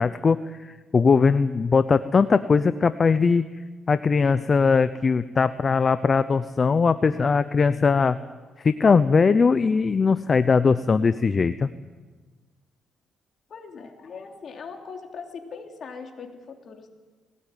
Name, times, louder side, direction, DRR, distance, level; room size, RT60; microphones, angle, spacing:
voice 1, 0.0-3.4 3.9-8.2 8.6-11.7, left 5 dB, 35° left, 13 dB, 0.7 m, -20 dB
voice 2, 13.5-16.9, left 5 dB, 55° left, 3 dB, 3.5 m, -40 dB
20.5 x 18.0 x 9.3 m, 1.3 s
cardioid pair, 90°, 0 cm